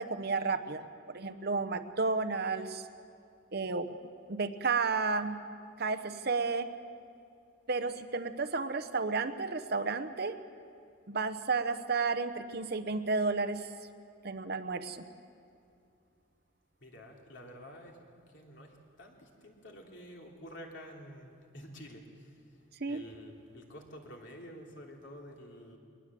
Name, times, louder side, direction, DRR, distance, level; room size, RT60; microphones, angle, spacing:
voice 1, 0.0-2.9 3.5-4.0 4.3-5.4 5.8-6.7 7.7-10.4 11.1-13.7 14.2-15.0 22.8-23.0, right 4 dB, 50° right, 9 dB, 0.9 m, -32 dB
voice 2, 16.8-18.0 18.3-25.8, equal, 60° left, 0 dB, 3.1 m, -50 dB
22.5 x 19.5 x 7.6 m, 2.5 s
head